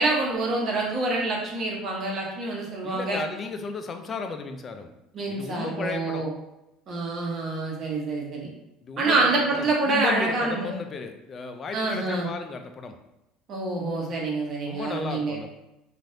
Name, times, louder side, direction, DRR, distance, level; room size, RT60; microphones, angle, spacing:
voice 1, 0.0-3.2 5.1-6.3 6.9-8.5 9.0-10.8 11.7-12.3 13.5-15.4, right 2 dB, 45° right, -1 dB, 0.9 m, -26 dB
voice 2, 2.8-4.9 5.3-6.2 8.8-13.0 14.7-15.5, left 4 dB, 40° left, 7 dB, 0.4 m, -35 dB
3.1 x 2.5 x 2.7 m, 0.90 s
supercardioid pair, 80°, 0 cm